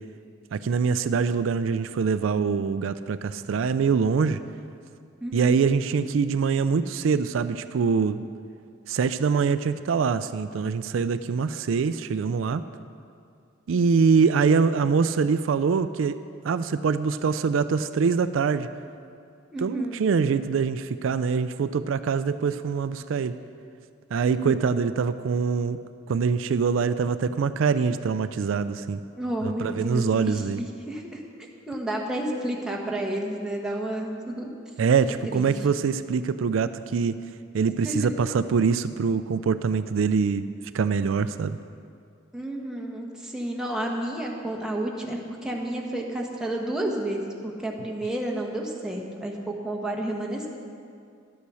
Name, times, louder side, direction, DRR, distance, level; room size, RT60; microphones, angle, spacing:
voice 1, 0.5-4.4 5.3-8.2 8.9-12.6 13.7-16.2 16.4-18.7 19.6-23.3 24.1-25.8 26.1-29.0 29.4-30.6 34.8-37.2 37.5-40.5 40.7-41.6, right 5 dB, 80° right, 12 dB, 0.4 m, -24 dB
voice 2, 5.2-5.6 19.5-20.0 24.2-24.6 29.2-31.2 31.7-34.5 35.3-35.5 37.8-38.1 42.3-50.5, right 1 dB, 5° right, -1 dB, 1.2 m, -31 dB
11.5 x 8.4 x 6.2 m, 2.4 s
head